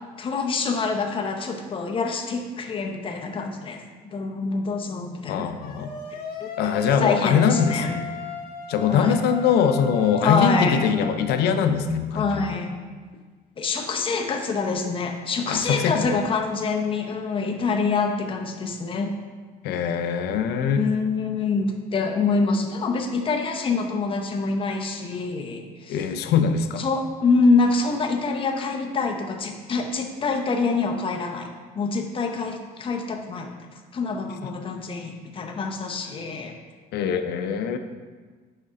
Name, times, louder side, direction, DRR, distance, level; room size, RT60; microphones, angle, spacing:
voice 1, 0.2-3.8 4.1-5.5 6.4-6.5 7.0-7.9 8.9-9.1 10.2-10.8 12.1-12.7 13.6-19.1 20.8-26.0 26.8-31.5 31.8-33.5 33.9-36.5, left 4 dB, 30° left, 2 dB, 0.7 m, -25 dB
voice 2, 5.3-5.9 6.6-8.1 8.7-12.6 15.5-16.2 19.6-20.9 25.9-26.9 36.9-37.8, left 7 dB, 75° left, 9 dB, 0.5 m, -22 dB
sound 1, 5.6-11.4, left 3 dB, 60° left, 1.1 m, -36 dB
6.6 x 4.9 x 3.7 m, 1.5 s
cardioid pair, 110°, 17 cm